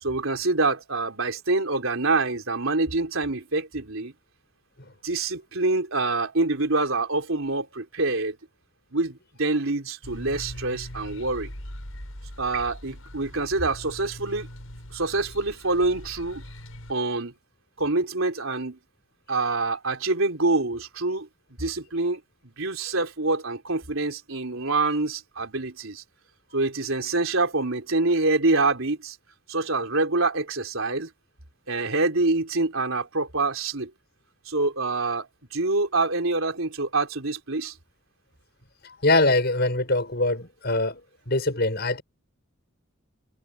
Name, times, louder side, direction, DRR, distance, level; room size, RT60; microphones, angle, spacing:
voice 1, 0.0-4.1 5.0-8.4 8.9-11.5 12.4-14.5 14.9-16.4 16.9-17.3 17.8-18.8 19.3-21.3 21.6-26.0 26.5-29.2 29.5-31.1 31.7-33.9 34.5-37.7, right 3 dB, 70° right, 3.7 m, -26 dB
sound 1, 10.0-16.9, equal, 75° left, 7.5 m, -41 dB
voice 2, 39.0-41.0 41.3-42.0, left 2 dB, 50° left, 6.6 m, -23 dB
head